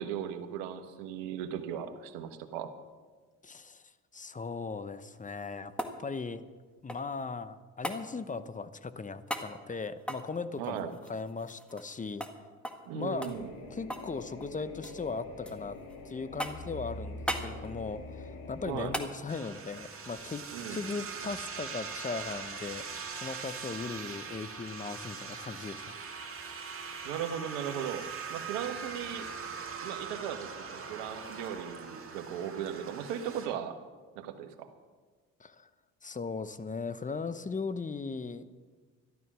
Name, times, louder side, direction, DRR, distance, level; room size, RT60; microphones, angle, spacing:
voice 1, 0.0-2.7 10.6-10.9 12.8-13.5 18.6-18.9 20.5-20.8 27.0-28.0 28.3-29.3 29.8-33.8 34.1-34.7, right 9 dB, 85° right, 8 dB, 1.3 m, -37 dB
voice 2, 3.4-5.7 6.0-6.4 6.8-12.3 12.9-13.3 13.7-15.8 16.0-20.4 20.7-26.0 35.4-35.7 36.0-38.5, left 4 dB, 20° left, 13 dB, 0.9 m, -38 dB
sound 1, 5.2-7.2 7.8-8.0 9.3-9.5 10.0-12.0 12.2-12.4 12.6-12.9 13.2-14.1 14.4-15.0 15.5-16.0 16.4-16.8 17.3-17.5 18.9-19.1 21.5-21.6, equal, 5° left, 1.7 m, -38 dB
sound 2, 13.1-19.0, left 2 dB, 70° left, 2.1 m, -44 dB
sound 3, 19.3-33.5, right 5 dB, 40° right, 2.3 m, -41 dB
13.0 x 12.5 x 6.2 m, 1.4 s
supercardioid pair, 70°, 36 cm